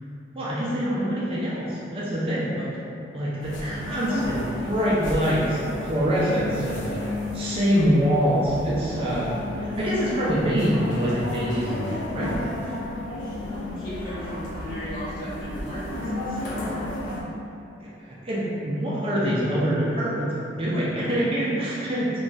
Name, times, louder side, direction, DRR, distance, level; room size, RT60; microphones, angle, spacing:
voice 1, 0.3-2.7 3.1-7.0 7.3-12.4 17.8-22.1, equal, 30° right, -8 dB, 0.4 m, -25 dB
sound 1, 3.4-17.2, left 2 dB, 90° left, 0.5 m, -33 dB
voice 2, 13.3-16.7, equal, 50° left, -13 dB, 1.1 m, -36 dB
3.0 x 2.2 x 2.5 m, 2.6 s
head